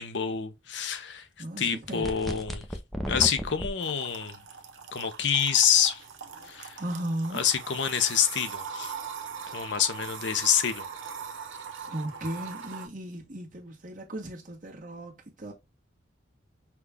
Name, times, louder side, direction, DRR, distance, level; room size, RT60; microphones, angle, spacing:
voice 1, 0.0-1.2 1.6-2.6 3.1-4.4 4.9-6.0 6.5-6.8 7.3-8.9 9.5-10.9, left 8 dB, 65° left, 0.6 m, -27 dB
voice 2, 1.4-2.2 6.7-7.4 9.4-9.7 11.9-15.5, right 1 dB, 45° right, 1.3 m, -36 dB
sound 1, 2.0-3.7, equal, ahead, 0.5 m, -33 dB
sound 2, 3.8-12.9, right 6 dB, 85° right, 0.9 m, -41 dB
5.8 x 2.3 x 3.3 m
head